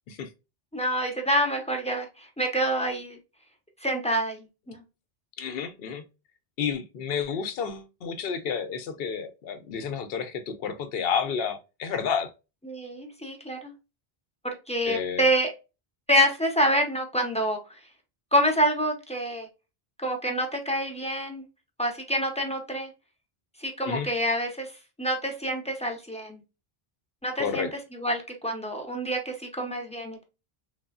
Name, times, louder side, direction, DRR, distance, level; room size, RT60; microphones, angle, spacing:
voice 1, 0.7-3.2 3.8-4.8 12.6-13.7 14.4-15.5 16.1-17.8 18.3-19.5 20.0-21.4 21.8-22.9 23.6-24.7 25.0-26.4 27.2-30.2, equal, 10° left, 0.4 m, -27 dB
voice 2, 5.4-6.0 6.6-12.3 14.8-15.2 23.9-24.1 27.4-27.7, left 6 dB, 70° left, 0.8 m, -30 dB
3.3 x 2.1 x 2.2 m
omnidirectional pair, 1.1 m